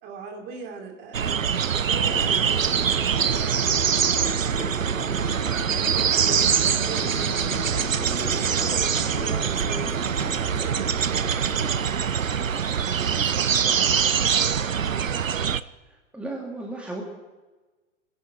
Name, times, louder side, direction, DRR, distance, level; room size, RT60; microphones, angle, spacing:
voice 1, 0.0-3.8 4.3-5.4 5.8-8.0 8.3-9.9 10.4-11.9 12.9-15.5, right 4 dB, 25° right, 3 dB, 2.8 m, -41 dB
sound 1, 1.1-15.6, right 7 dB, 85° right, 0.6 m, -24 dB
sound 2, 1.9-11.7, left 3 dB, 75° left, 4.3 m, -37 dB
sound 3, 1.9-4.8 5.6-12.5 12.9-13.2, left 8 dB, 40° left, 1.7 m, -45 dB
voice 2, 16.1-17.0, right 2 dB, 5° right, -1 dB, 1.9 m, -34 dB
25.5 x 11.0 x 5.0 m, 1.2 s
figure-of-eight pair, 115°, 38 cm